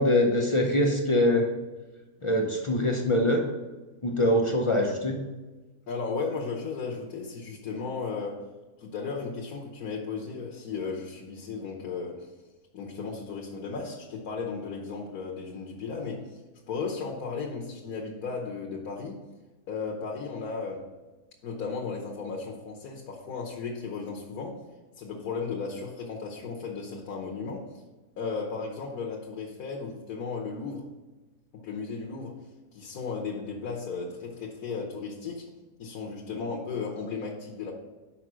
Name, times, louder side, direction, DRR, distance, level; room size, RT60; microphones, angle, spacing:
voice 1, 0.0-1.5 2.2-3.5 4.0-5.2, left 1 dB, 40° left, 1 dB, 0.4 m, -23 dB
voice 2, 5.9-8.4 8.8-12.3 12.7-16.4 16.7-19.2 19.7-20.9 21.4-24.6 25.0-27.7 28.2-30.9 31.5-32.4 32.7-35.5 35.8-37.7, left 4 dB, 75° left, -2 dB, 1.4 m, -35 dB
5.8 x 5.2 x 6.1 m, 1.2 s
omnidirectional pair, 1.6 m